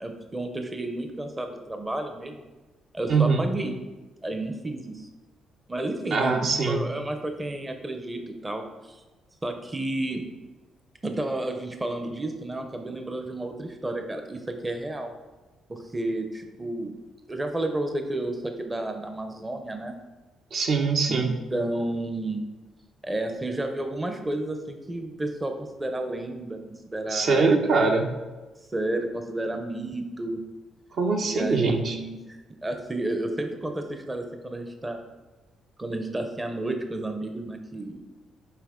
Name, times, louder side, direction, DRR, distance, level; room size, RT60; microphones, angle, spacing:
voice 1, 0.0-2.5 2.9-3.8 4.2-5.1 5.7-9.0 9.4-10.2 11.0-15.1 15.7-16.9 17.3-20.0 21.1-22.4 23.0-27.4 28.7-30.4 31.2-35.0 35.8-38.0, right 1 dB, 20° right, 5 dB, 0.6 m, -31 dB
voice 2, 3.1-3.5 6.1-6.8 20.5-21.3 27.1-28.1 31.0-32.0, right 4 dB, 60° right, 3 dB, 0.8 m, -22 dB
5.7 x 4.5 x 3.6 m, 1.2 s
cardioid pair, 90°, 0 cm